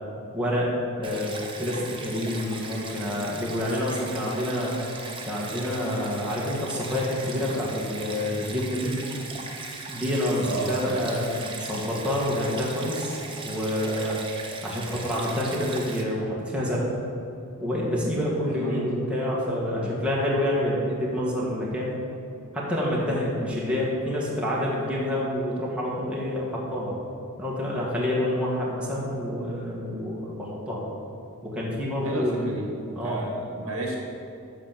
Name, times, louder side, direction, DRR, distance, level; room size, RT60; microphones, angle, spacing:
voice 1, 0.3-4.8 5.3-9.1 9.9-14.2 14.6-16.9 17.6-22.0 22.5-27.0 27.4-30.8 31.4-32.6 33.0-33.3, left 1 dB, 5° right, -6 dB, 1.8 m, -28 dB
Stream, 1.0-16.0, right 3 dB, 25° right, 1.0 m, -38 dB
voice 2, 10.4-11.1 18.5-18.9 19.8-19.9 32.0-34.0, right 2 dB, 65° right, -1 dB, 2.0 m, -32 dB
12.5 x 4.4 x 7.4 m, 2.5 s
head